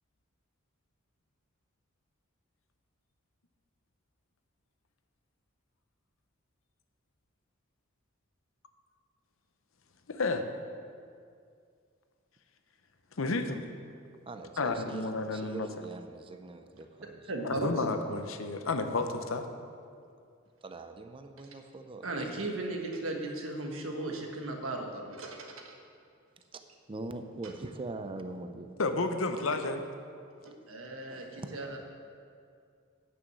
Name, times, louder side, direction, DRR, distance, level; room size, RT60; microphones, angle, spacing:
voice 1, 10.1-10.5 13.2-13.6 14.6-15.7 17.6-19.5 28.8-29.8, left 3 dB, 70° left, 7 dB, 0.8 m, -31 dB
voice 2, 14.3-17.3 20.6-22.3 26.5-26.6 26.9-28.7 31.1-31.6, right 2 dB, 25° right, 7 dB, 0.5 m, -42 dB
voice 3, 17.3-17.8 22.0-25.7 30.4-31.8, right 2 dB, 75° right, 2 dB, 1.4 m, -36 dB
9.2 x 6.3 x 7.8 m, 2.3 s
head